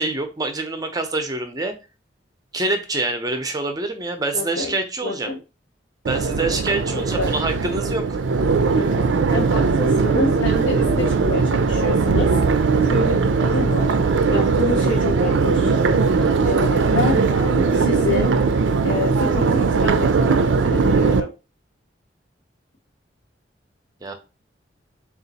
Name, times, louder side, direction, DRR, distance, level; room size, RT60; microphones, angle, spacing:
voice 1, 0.0-1.7 2.5-5.3 6.1-8.2 24.0-24.1, right 2 dB, 20° right, 5 dB, 0.6 m, -25 dB
voice 2, 4.3-4.7 5.0-5.4 6.9-7.3 8.7-12.4 12.9-13.9 14.3-15.7 16.2-18.4 18.8-21.3, left 2 dB, 80° left, -2 dB, 0.7 m, -28 dB
Crowd, 6.1-21.2, right 4 dB, 75° right, 0.4 m, -19 dB
3.9 x 2.5 x 4.0 m, 0.30 s
head